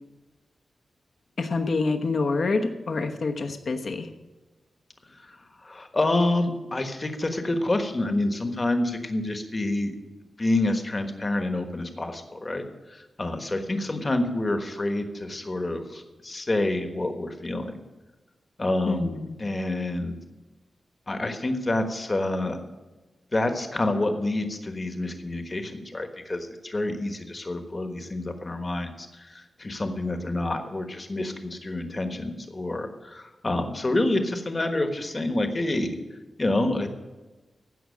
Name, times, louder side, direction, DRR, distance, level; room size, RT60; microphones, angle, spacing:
voice 1, 1.4-4.1 18.9-19.4, left 3 dB, 55° left, 6 dB, 1.1 m, -27 dB
voice 2, 5.1-9.9 10.4-17.8 18.6-19.1 19.4-20.2 21.1-22.6 23.3-35.9 36.4-36.9, left 2 dB, 25° left, 6 dB, 1.3 m, -28 dB
15.5 x 6.1 x 8.5 m, 1.2 s
wide cardioid pair, 170°, 0 cm